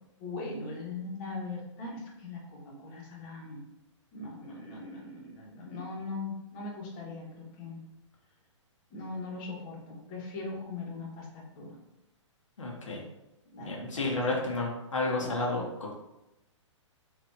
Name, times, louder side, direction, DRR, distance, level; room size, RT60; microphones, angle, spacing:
voice 1, 0.2-3.6 4.1-7.8 8.9-11.3 11.5-11.7 13.5-14.3 15.2-15.4, left 3 dB, 30° left, -3 dB, 1.2 m, -40 dB
voice 2, 12.6-13.0 13.6-15.9, left 2 dB, 80° left, -2 dB, 0.9 m, -31 dB
4.3 x 2.7 x 2.7 m, 0.94 s
figure-of-eight pair, 125°, 16 cm